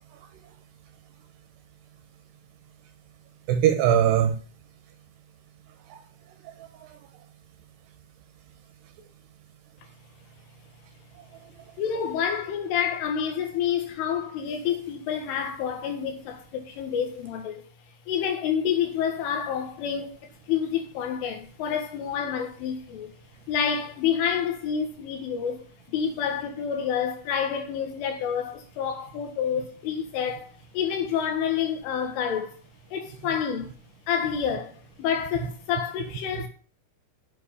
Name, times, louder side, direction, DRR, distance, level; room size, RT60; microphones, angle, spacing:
voice 1, 3.5-4.4 5.9-6.0 6.6-7.0 36.4-36.5, right 10 dB, 75° right, 2.6 m, -22 dB
voice 2, 11.8-17.6 18.1-23.1 23.5-25.6 25.9-32.6 32.9-33.7 34.1-36.5, left 8 dB, 85° left, 4.3 m, -28 dB
8.4 x 7.4 x 7.1 m
omnidirectional pair, 5.6 m